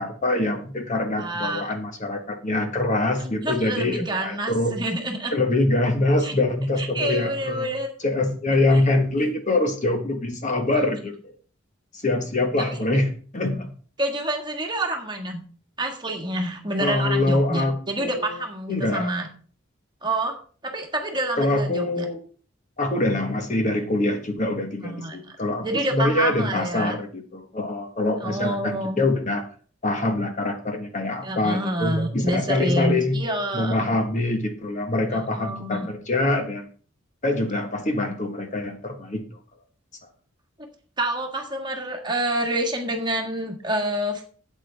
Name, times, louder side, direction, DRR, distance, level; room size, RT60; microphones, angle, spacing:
voice 1, 0.0-4.7 5.3-11.1 11.9-13.1 13.3-13.7 16.8-18.4 18.7-19.1 21.3-22.2 22.8-29.4 29.8-33.2 33.5-36.7 37.2-39.2, left 2 dB, 35° left, 5 dB, 1.4 m, -24 dB
voice 2, 1.2-1.7 3.2-5.3 6.2-6.3 6.8-7.9 10.7-10.8 12.6-12.7 14.0-15.4 15.8-19.3 20.0-20.4 20.6-22.1 24.8-25.2 25.6-27.0 28.2-29.1 31.2-33.9 35.1-35.9 41.0-44.2, right 1 dB, 20° right, 3 dB, 1.7 m, -28 dB
12.5 x 8.5 x 3.4 m, 0.42 s
head